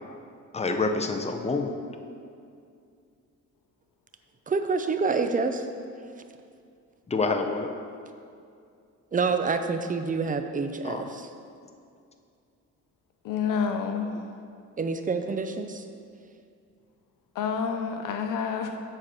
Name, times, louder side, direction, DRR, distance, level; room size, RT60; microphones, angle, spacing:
voice 1, 0.5-1.7 7.1-7.7 10.8-11.1, left 3 dB, 20° left, 5 dB, 0.7 m, -27 dB
voice 2, 4.5-5.7 9.1-11.3 14.8-15.9, right 4 dB, 25° right, 8 dB, 0.5 m, -27 dB
voice 3, 13.2-14.2 17.3-18.8, left 6 dB, 75° left, 5 dB, 0.8 m, -28 dB
7.5 x 4.4 x 6.3 m, 2.4 s
cardioid pair, 90°, 32 cm